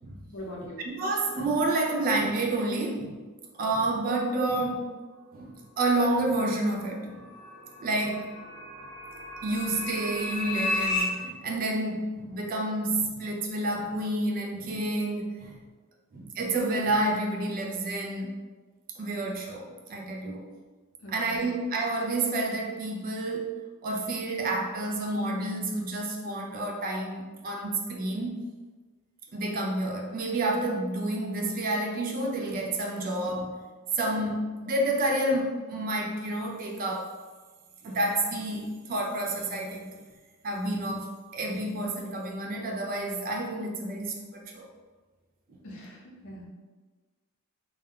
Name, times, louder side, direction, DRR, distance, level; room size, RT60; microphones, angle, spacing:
voice 1, 0.3-0.8 21.0-21.5 45.6-46.5, equal, 60° left, -3 dB, 0.7 m, -42 dB
voice 2, 0.8-3.2 3.5-4.9 5.3-7.2 7.8-8.3 9.4-15.6 16.1-18.4 19.0-20.5 21.1-28.4 29.3-33.6 33.9-37.1 37.8-39.9 40.4-44.7, right 2 dB, 40° right, 1 dB, 0.3 m, -29 dB
sound 1, 6.8-11.0, left 2 dB, 5° left, 0.8 m, -33 dB
2.3 x 2.2 x 3.4 m, 1.3 s
head